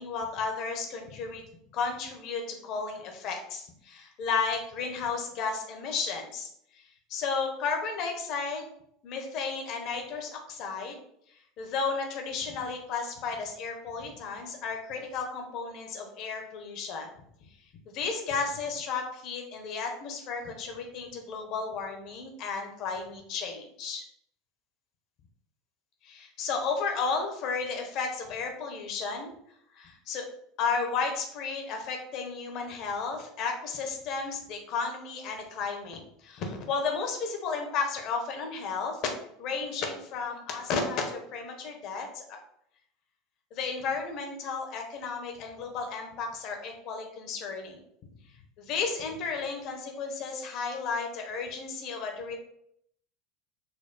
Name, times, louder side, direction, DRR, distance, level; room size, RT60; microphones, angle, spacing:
voice 1, 0.0-1.4 1.7-6.5 7.1-8.7 9.0-11.0 11.6-17.1 17.9-24.0 26.0-29.3 29.7-30.2 30.6-39.0 39.4-42.4 43.5-47.8 48.6-52.4, left 5 dB, 50° left, 3 dB, 0.9 m, -33 dB
4.4 x 2.2 x 4.0 m, 0.72 s
figure-of-eight pair, 75°, 0 cm